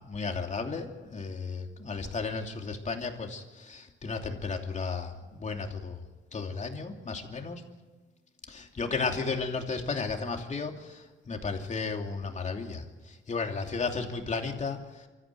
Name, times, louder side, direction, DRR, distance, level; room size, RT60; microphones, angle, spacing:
voice 1, 0.0-6.0 6.3-7.6 8.5-12.8 13.3-14.8, left 4 dB, 35° left, 3 dB, 2.9 m, -34 dB
25.0 x 14.0 x 9.3 m, 1.3 s
cardioid pair, 90°, 20 cm